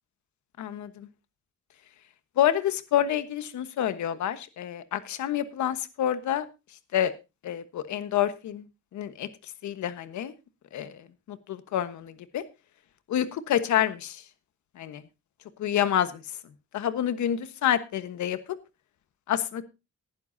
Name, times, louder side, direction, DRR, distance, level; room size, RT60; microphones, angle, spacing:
voice 1, 0.6-1.1 2.4-6.4 6.9-7.1 7.4-8.6 8.9-9.3 9.6-10.3 10.7-11.0 11.3-12.4 13.1-14.2 14.8-15.0 15.6-16.2 16.7-18.4 19.3-19.6, left 10 dB, 75° left, 11 dB, 1.3 m, -28 dB
18.5 x 10.5 x 2.7 m, 0.27 s
cardioid pair, 170°, 29 cm